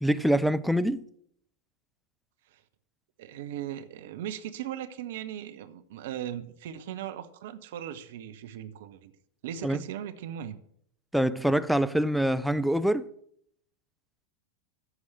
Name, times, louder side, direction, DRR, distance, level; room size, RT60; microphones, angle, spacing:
voice 1, 0.0-1.0 9.6-9.8 11.1-13.1, right 1 dB, ahead, 0.5 m, -25 dB
voice 2, 3.2-9.1 9.4-10.6, right 10 dB, 55° right, 0.9 m, -38 dB
14.0 x 4.8 x 7.9 m
figure-of-eight pair, 90°, 0 cm